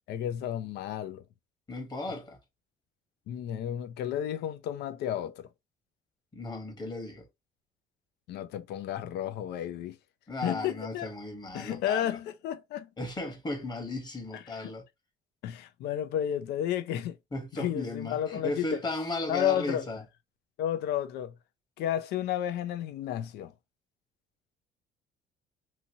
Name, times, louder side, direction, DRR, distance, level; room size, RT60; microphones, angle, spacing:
voice 1, 0.1-1.2 3.3-5.5 8.3-10.0 10.4-11.1 11.5-12.9 14.5-14.7 15.4-17.2 17.5-18.8 19.3-19.8 20.6-21.3 21.8-23.5, left 11 dB, 75° left, 0.5 m, -32 dB
voice 2, 1.7-2.4 6.3-7.3 10.3-12.2 13.0-14.8 17.3-20.0, left 2 dB, 25° left, 1.1 m, -35 dB
2.8 x 2.7 x 2.7 m
cardioid pair, 110°, 17 cm